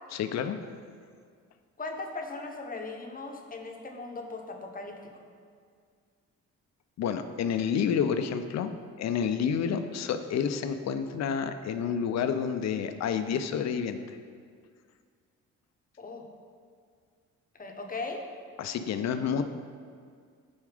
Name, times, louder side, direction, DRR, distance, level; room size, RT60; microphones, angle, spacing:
voice 1, 0.1-0.6 7.0-8.7 9.0-14.0 18.6-19.4, left 7 dB, 60° left, 9 dB, 0.6 m, -29 dB
voice 2, 1.8-5.0 16.0-16.3 17.6-18.2 19.1-19.4, left 3 dB, 30° left, 3 dB, 0.9 m, -38 dB
7.1 x 4.4 x 5.0 m, 2.1 s
cardioid pair, 90°, 30 cm